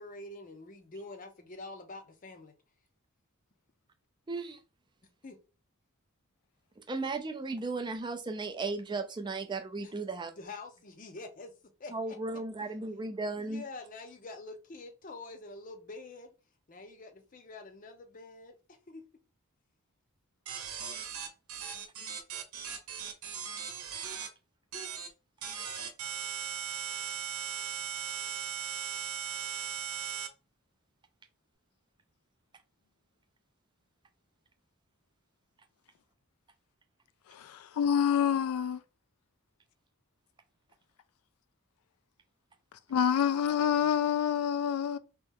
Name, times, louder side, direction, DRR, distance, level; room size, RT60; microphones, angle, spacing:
voice 1, 0.0-2.5 5.2-5.4 9.8-9.9 10.3-12.2 13.4-16.3 16.7-19.1, left 3 dB, 35° left, 0.6 m, -46 dB
voice 2, 4.3-4.6 6.8-10.3 11.9-13.6, right 3 dB, 20° right, 0.4 m, -35 dB
sound 1, 20.5-24.3 24.7-25.1 25.4-30.3, right 8 dB, 80° right, 0.9 m, -38 dB
voice 3, 37.3-38.8 42.9-45.0, left 8 dB, 80° left, 0.3 m, -27 dB
3.2 x 3.0 x 3.6 m
head